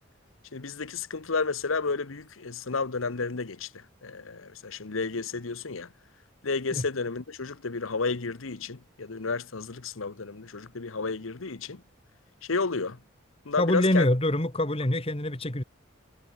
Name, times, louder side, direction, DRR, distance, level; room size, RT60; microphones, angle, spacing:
voice 1, 0.5-5.9 6.4-11.8 12.4-13.0 13.4-14.0, left 4 dB, 80° left, 1.1 m, -31 dB
voice 2, 13.6-15.6, left 1 dB, 30° left, 2.2 m, -25 dB
head